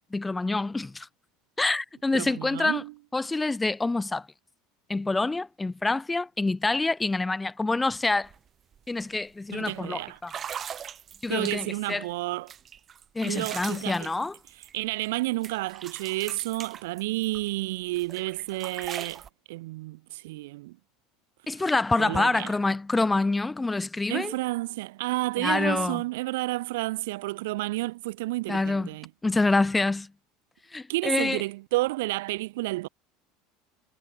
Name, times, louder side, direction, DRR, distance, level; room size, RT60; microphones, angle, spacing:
voice 1, 0.1-1.1 1.6-2.8 3.1-4.3 4.9-8.3 8.9-10.3 11.2-12.1 13.2-14.4 21.5-24.3 25.4-26.0 28.5-28.9 29.2-30.1 30.7-31.4, left 3 dB, 10° left, 0.5 m, -26 dB
voice 2, 2.1-2.9 9.5-10.2 11.3-12.5 13.2-14.1 14.7-19.2 19.5-20.8 22.0-22.5 24.1-29.1 30.9-32.9, right 20 dB, 85° right, 1.3 m, -31 dB
sound 1, 8.2-8.4 8.7-9.0 9.7-9.8 10.2-11.9 12.5-15.2 15.4-17.5 17.9-19.3, right 8 dB, 30° right, 1.7 m, -40 dB
supercardioid pair, 140°, 0 cm